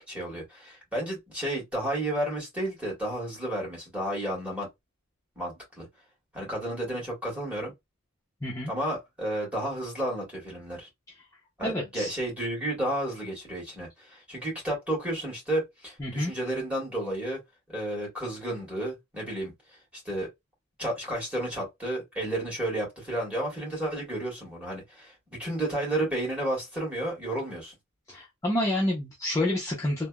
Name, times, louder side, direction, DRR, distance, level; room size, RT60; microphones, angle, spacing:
voice 1, 0.1-4.7 5.3-5.9 6.3-7.7 8.6-10.9 11.6-17.4 17.7-19.5 19.9-20.3 20.8-25.1 25.4-27.7, right 1 dB, 5° right, 1.6 m, -32 dB
voice 2, 8.4-8.7 11.6-12.2 16.0-16.3 28.1-30.1, left 1 dB, 15° left, 0.6 m, -28 dB
3.3 x 2.1 x 2.3 m
head